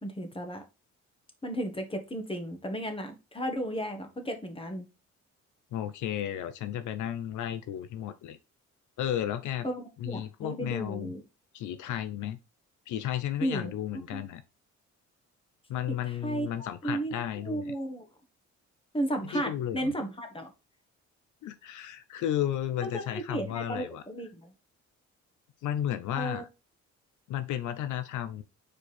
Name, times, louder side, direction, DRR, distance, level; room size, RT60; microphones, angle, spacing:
voice 1, 0.0-0.6 1.4-4.8 9.6-11.2 13.4-13.7 14.1-14.3 15.9-18.1 18.9-20.5 22.8-24.5 26.1-26.4, right 1 dB, 20° left, 1.6 m, -34 dB
voice 2, 5.7-8.4 9.0-9.7 10.0-11.1 11.5-12.4 12.9-14.4 15.7-17.7 19.3-19.9 21.4-24.0 25.6-26.5 27.3-28.4, left 11 dB, 80° left, 0.6 m, -33 dB
5.0 x 4.6 x 4.2 m
cardioid pair, 90°, 30 cm